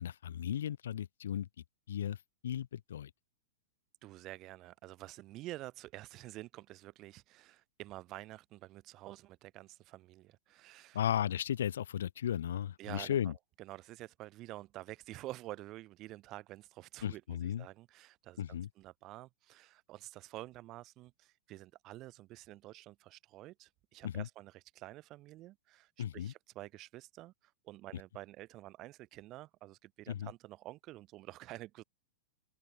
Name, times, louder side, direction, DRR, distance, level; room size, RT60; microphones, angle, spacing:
voice 1, 0.0-1.5 1.9-2.2 2.4-3.1 10.9-13.3 17.0-17.6 18.4-18.7 24.0-24.3 26.0-26.3 30.1-30.3, left 10 dB, 85° left, 1.3 m, -35 dB
voice 2, 4.0-11.0 12.8-13.3 13.6-27.3 27.6-31.8, right 17 dB, 30° right, 2.6 m, -49 dB
supercardioid pair, 160°, 0 cm